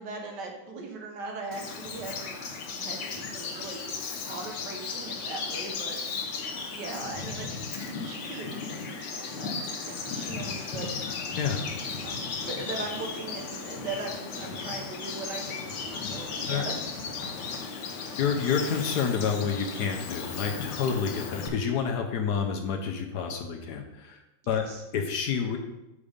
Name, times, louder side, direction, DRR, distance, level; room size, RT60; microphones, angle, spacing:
voice 1, 0.0-2.4 2.8-3.9 4.2-7.5 7.7-10.9 11.9-12.1 12.4-17.1 24.4-24.8, right 3 dB, 65° right, 2 dB, 1.7 m, -39 dB
Bird vocalization bird call bird song, 1.5-21.5, left 5 dB, 85° left, 1.7 m, -35 dB
voice 2, 18.2-24.2 24.5-24.6 24.9-25.6, left 6 dB, 65° left, 3 dB, 1.2 m, -28 dB
6.9 x 5.0 x 5.1 m, 0.95 s
omnidirectional pair, 2.0 m